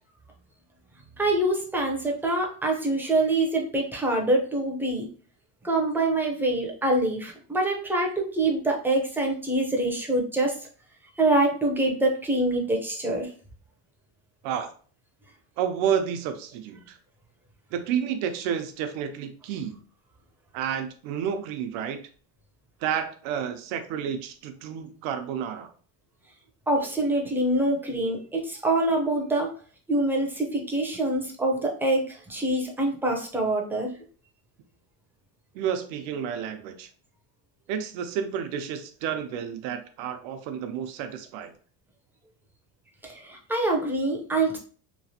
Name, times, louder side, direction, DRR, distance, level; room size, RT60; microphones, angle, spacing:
voice 1, 1.2-5.1 5.6-10.6 11.2-13.3 26.7-29.5 29.9-33.9 43.0-44.6, right 2 dB, 5° right, 0 dB, 0.5 m, -25 dB
voice 2, 15.6-17.0 17.7-19.8 20.5-22.0 22.8-25.7 35.5-36.9 37.7-41.5, right 8 dB, 90° right, 8 dB, 0.7 m, -30 dB
3.1 x 2.4 x 2.7 m, 0.42 s
cardioid pair, 140°, 45 cm